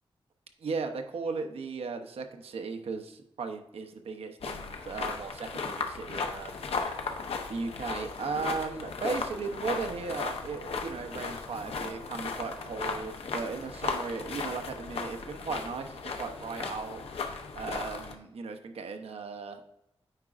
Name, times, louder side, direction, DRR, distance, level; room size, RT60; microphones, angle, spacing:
voice 1, 0.6-6.7 7.5-17.0 17.5-19.6, right 4 dB, 85° right, 6 dB, 0.7 m, -36 dB
sound 1, 4.4-18.1, left 4 dB, 90° left, 0.7 m, -36 dB
8.9 x 4.8 x 2.4 m, 0.82 s
wide cardioid pair, 135°, 10 cm